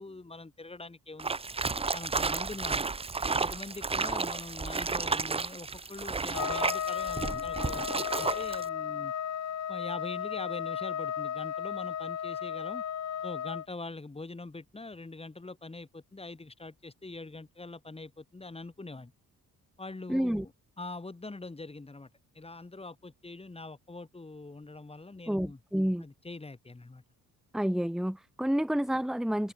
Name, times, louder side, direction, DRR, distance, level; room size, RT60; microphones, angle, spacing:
voice 1, 0.0-1.4 1.9-2.8 3.2-9.1 9.7-12.8 13.2-19.1 19.8-20.5 20.8-22.1 22.3-25.6 26.0-27.0, left 3 dB, 15° left, 8.0 m, -43 dB
sound 1, 1.2-8.7, right 4 dB, 15° right, 0.7 m, -32 dB
Trumpet, 6.3-13.7, left 9 dB, 50° left, 1.8 m, -34 dB
voice 2, 20.1-20.4 25.3-26.0 27.5-29.5, equal, ahead, 1.5 m, -29 dB
cardioid pair, 120°, 35 cm